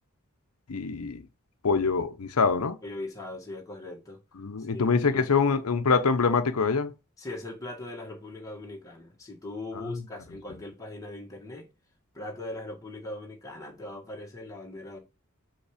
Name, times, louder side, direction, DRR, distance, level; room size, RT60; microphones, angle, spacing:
voice 1, 0.7-1.2 1.6-2.8 4.4-6.9, left 5 dB, 85° left, 0.7 m, -24 dB
voice 2, 2.8-4.2 4.6-5.2 7.2-11.7 12.1-15.0, left 2 dB, 15° left, 1.8 m, -40 dB
5.7 x 5.3 x 5.0 m
head